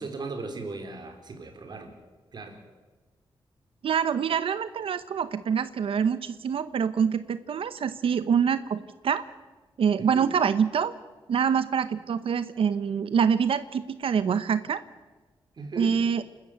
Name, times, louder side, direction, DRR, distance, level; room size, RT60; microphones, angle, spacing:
voice 1, 0.0-1.9 2.3-2.6 10.0-10.3 15.6-15.9, right 3 dB, 50° right, 5 dB, 4.1 m, -37 dB
voice 2, 3.8-9.2 9.8-10.9 11.3-14.8 15.8-16.2, right 7 dB, 75° right, 13 dB, 0.9 m, -25 dB
28.5 x 13.5 x 9.2 m, 1.3 s
wide cardioid pair, 130°, 9 cm